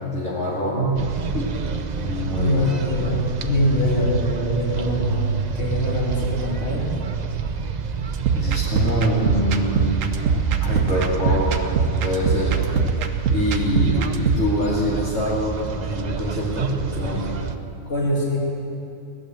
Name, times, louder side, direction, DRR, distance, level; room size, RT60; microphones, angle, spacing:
voice 1, 0.1-1.0 1.3-1.5 2.0-2.8 8.4-9.9 10.6-11.6 12.0-12.6 13.3-17.3, equal, 70° left, -7 dB, 2.7 m, -24 dB
sound 1, 0.9-17.6, right 6 dB, 45° right, 0.6 m, -28 dB
voice 2, 2.3-5.2 5.5-6.9 13.6-14.0 17.8-18.4, equal, 50° left, -4 dB, 3.2 m, -23 dB
sound 2, 8.1-14.5, right 5 dB, 70° right, 1.2 m, -23 dB
17.0 x 11.0 x 7.7 m, 2.8 s
omnidirectional pair, 1.4 m